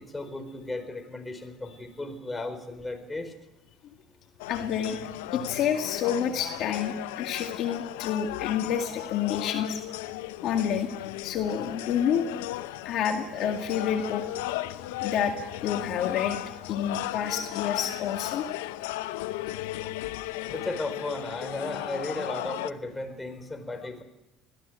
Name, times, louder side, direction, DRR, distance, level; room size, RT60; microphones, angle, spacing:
voice 1, 0.0-3.3 20.5-24.0, left 2 dB, 15° left, 6 dB, 4.5 m, -35 dB
sound 1, 4.4-22.7, left 16 dB, 85° left, 0.7 m, -36 dB
voice 2, 4.5-5.0 5.3-9.8 10.4-10.9 11.2-12.3 12.8-14.2 15.0-16.4 16.7-18.4, left 8 dB, 65° left, 4 dB, 2.2 m, -28 dB
20.0 x 14.5 x 9.3 m, 0.93 s
supercardioid pair, 80°, 0 cm